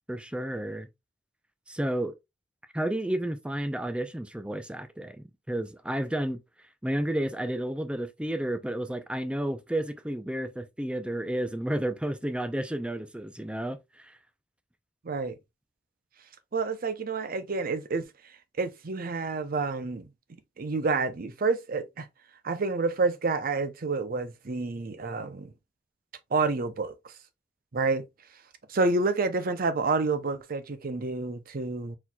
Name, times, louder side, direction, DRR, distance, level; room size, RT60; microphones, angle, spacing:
voice 1, 0.1-0.9 1.7-2.2 2.7-6.4 6.8-14.2, right 1 dB, 5° right, 0.5 m, -31 dB
voice 2, 15.0-15.4 16.5-18.1 18.6-20.1 20.6-22.1 22.4-25.5 26.3-27.1 27.7-28.1 28.7-32.0, right 3 dB, 50° right, 0.6 m, -29 dB
4.4 x 4.2 x 2.3 m
head